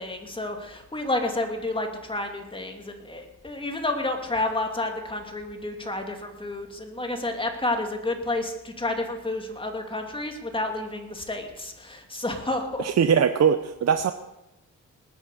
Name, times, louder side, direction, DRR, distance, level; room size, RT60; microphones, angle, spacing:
voice 1, 0.0-12.9, left 2 dB, 15° left, 3 dB, 2.7 m, -30 dB
voice 2, 12.8-14.1, right 7 dB, 55° right, 9 dB, 0.8 m, -21 dB
19.5 x 9.4 x 6.8 m, 0.91 s
cardioid pair, 110°, 32 cm